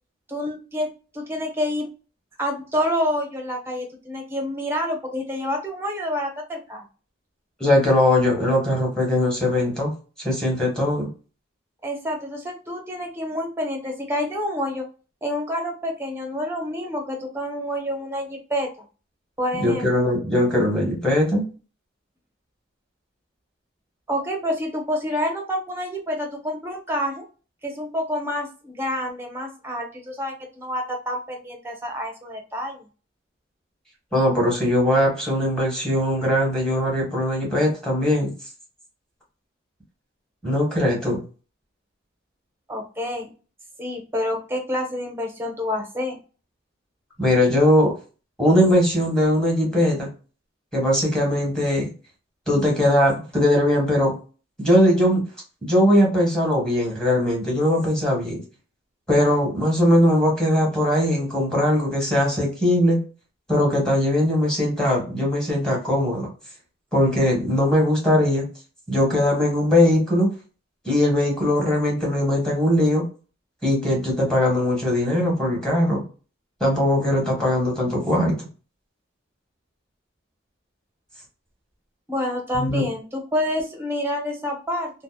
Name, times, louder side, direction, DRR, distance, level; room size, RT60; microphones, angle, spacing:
voice 1, 0.3-1.9 2.4-6.9 11.8-14.9 15.2-18.7 19.4-20.1 24.1-27.2 27.6-32.8 42.7-43.3 43.8-46.2 82.1-84.9, left 1 dB, 10° right, 2 dB, 0.6 m, -28 dB
voice 2, 7.6-9.9 10.2-11.1 19.5-21.5 34.1-38.3 40.4-41.2 47.2-47.9 48.4-50.1 50.7-51.9 52.5-54.1 54.6-55.2 55.6-58.4 59.1-63.0 63.5-66.3 66.9-68.5 68.9-70.3 70.8-73.0 73.6-76.0 76.6-78.5 82.5-82.9, left 1 dB, 5° left, -2 dB, 1.0 m, -20 dB
2.7 x 2.0 x 2.3 m, 0.36 s
head